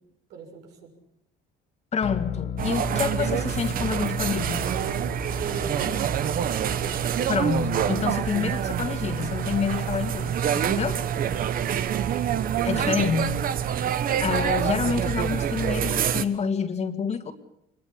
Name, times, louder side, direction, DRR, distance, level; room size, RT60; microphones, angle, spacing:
voice 1, 0.3-0.9 5.2-6.2 11.3-11.7, right 6 dB, 85° right, 6.6 m, -38 dB
voice 2, 1.9-4.7 7.3-11.0 12.6-13.6 14.2-17.3, left 6 dB, 40° left, 2.3 m, -28 dB
sound 1, 2.0-15.4, left 9 dB, 80° left, 1.5 m, -40 dB
sound 2, 2.6-16.3, right 9 dB, 55° right, 1.2 m, -26 dB
24.0 x 21.0 x 8.7 m
cardioid pair, 110°, 17 cm